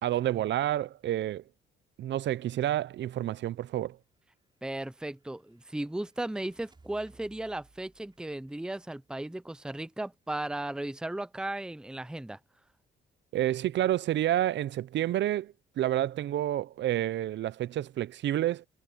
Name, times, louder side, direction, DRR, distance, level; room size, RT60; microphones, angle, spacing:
voice 1, 0.0-1.4 2.0-4.0 13.3-18.7, right 12 dB, 65° right, 0.6 m, -29 dB
sound 1, 4.2-9.9, right 3 dB, 25° right, 4.1 m, -63 dB
voice 2, 4.6-12.4, right 1 dB, 5° right, 0.7 m, -36 dB
cardioid pair, 90°, 20 cm